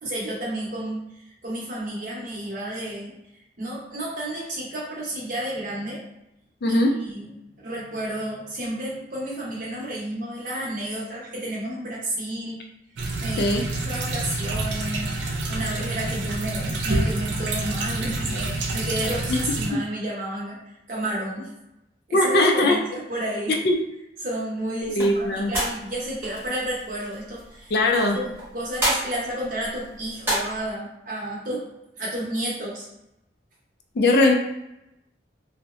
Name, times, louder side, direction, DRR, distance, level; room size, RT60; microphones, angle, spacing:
voice 1, 0.0-3.2 3.6-6.0 6.7-7.3 7.6-12.6 13.2-20.6 20.9-21.5 22.1-23.6 24.2-27.7 28.1-31.6 32.0-32.9, right 1 dB, 45° right, -5 dB, 0.7 m, -31 dB
voice 2, 6.6-7.0 13.4-13.7 19.7-19.8 22.1-22.8 23.5-23.8 24.8-25.5 27.7-28.2 33.9-34.4, left 2 dB, 60° left, 2 dB, 0.3 m, -20 dB
sound 1, 13.0-19.7, right 2 dB, 85° right, 0.4 m, -28 dB
sound 2, 24.8-30.7, right 1 dB, 10° right, 0.9 m, -31 dB
2.7 x 2.0 x 2.4 m, 0.89 s
head